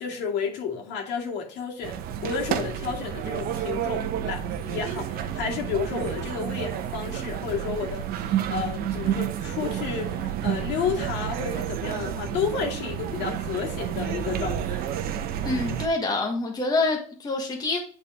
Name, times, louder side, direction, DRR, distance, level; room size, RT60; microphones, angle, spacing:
voice 1, 0.0-2.0 2.2-14.8, left 6 dB, 65° left, 2.3 m, -31 dB
sound 1, 1.8-15.9, right 9 dB, 55° right, 0.8 m, -30 dB
voice 2, 15.4-17.8, left 3 dB, 20° left, 1.3 m, -26 dB
8.2 x 4.2 x 3.5 m
supercardioid pair, 120°, 19 cm